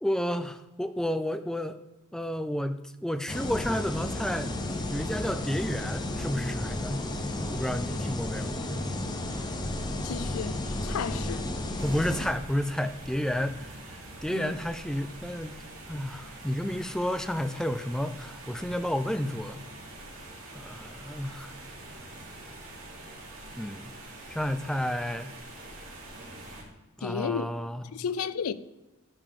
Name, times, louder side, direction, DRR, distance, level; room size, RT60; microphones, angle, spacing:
voice 1, 0.0-1.8 2.1-4.5 4.9-7.0 7.4-8.6 11.8-15.5 15.9-19.6 20.5-21.5 23.6-23.9 24.3-25.3 27.0-27.8, equal, 5° left, 0.3 m, -31 dB
sound 1, 3.3-12.3, left 1 dB, 20° left, 0.8 m, -33 dB
voice 2, 10.0-11.5 14.3-14.6 27.0-27.5 27.8-28.5, left 6 dB, 80° left, 0.4 m, -33 dB
sound 2, 11.8-26.6, right 2 dB, 80° right, 3.0 m, -45 dB
10.5 x 6.8 x 3.7 m
head